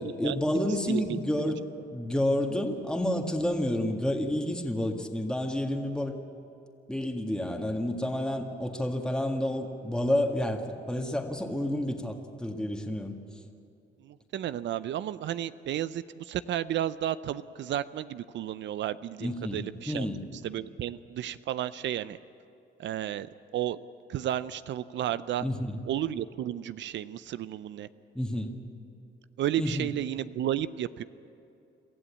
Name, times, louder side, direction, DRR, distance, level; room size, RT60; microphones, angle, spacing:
voice 1, 0.0-1.6 1.9-6.2 6.9-13.1 19.2-20.2 25.4-25.8 28.2-28.5 29.6-29.9, left 1 dB, 5° left, 2 dB, 1.8 m, -30 dB
voice 2, 0.9-1.5 14.0-22.2 22.8-23.8 24.1-25.5 25.8-27.9 29.4-31.0, right 11 dB, 70° right, 15 dB, 0.5 m, -33 dB
23.5 x 14.0 x 8.6 m, 2.7 s
cardioid pair, 90°, 20 cm